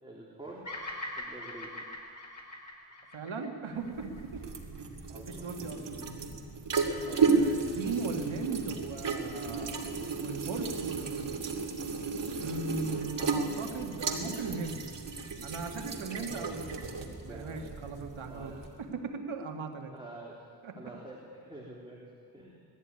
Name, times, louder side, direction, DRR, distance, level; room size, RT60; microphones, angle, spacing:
voice 1, 0.0-0.7 1.2-1.7 5.1-6.3 7.0-7.3 12.6-13.1 16.0-16.6 17.2-17.7 18.2-18.6 19.9-20.5 20.8-22.6, right 2 dB, 10° right, -4 dB, 3.5 m, -47 dB
Bird vocalization bird call bird song, 0.6-4.9, left 1 dB, 40° left, 4.2 m, -42 dB
voice 2, 3.1-4.4 5.3-5.8 7.2-11.4 12.4-14.8 15.4-16.9 17.2-18.5 18.8-19.9 20.6-20.7, right 4 dB, 85° right, 3 dB, 2.0 m, -38 dB
sound 1, 3.8-18.8, right 4 dB, 65° right, 2.6 m, -33 dB
19.5 x 13.5 x 9.7 m, 2.2 s
cardioid pair, 75°, 47 cm